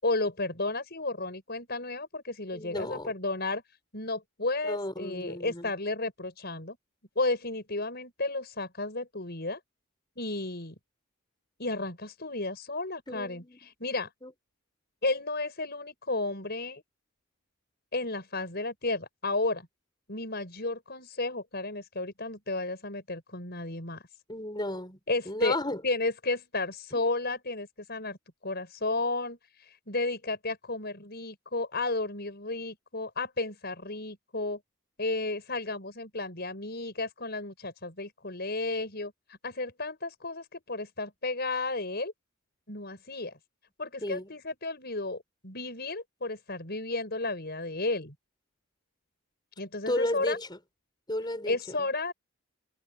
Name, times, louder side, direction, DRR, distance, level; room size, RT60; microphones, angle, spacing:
voice 1, 0.0-3.6 3.9-6.8 7.1-9.6 10.2-10.7 11.6-14.1 15.0-16.8 17.9-19.7 20.1-24.0 25.1-25.6 25.8-28.2 28.4-34.6 35.0-42.1 42.7-43.3 43.8-48.1 49.6-50.4 51.5-52.1, left 2 dB, 45° left, 6.3 m, -33 dB
voice 2, 2.5-3.1 4.6-5.7 13.1-13.6 14.2-14.3 24.3-25.0 25.3-25.8 26.9-27.0 44.0-44.3 49.9-50.6 51.1-51.6, left 1 dB, 20° left, 7.4 m, -33 dB
head